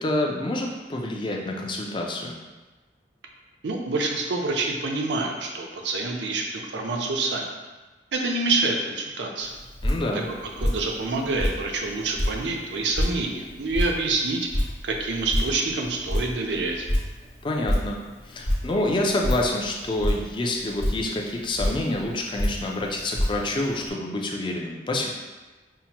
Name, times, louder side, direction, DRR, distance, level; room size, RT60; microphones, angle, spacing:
voice 1, 0.0-2.4 9.8-10.3 17.4-25.1, left 1 dB, 25° left, 0 dB, 0.4 m, -27 dB
voice 2, 3.6-7.4 8.1-9.5 10.6-16.9, right 3 dB, 80° right, 1 dB, 0.5 m, -27 dB
Drip, 9.4-23.9, equal, 70° left, 1.1 m, -30 dB
5.6 x 2.1 x 2.9 m, 1.2 s
head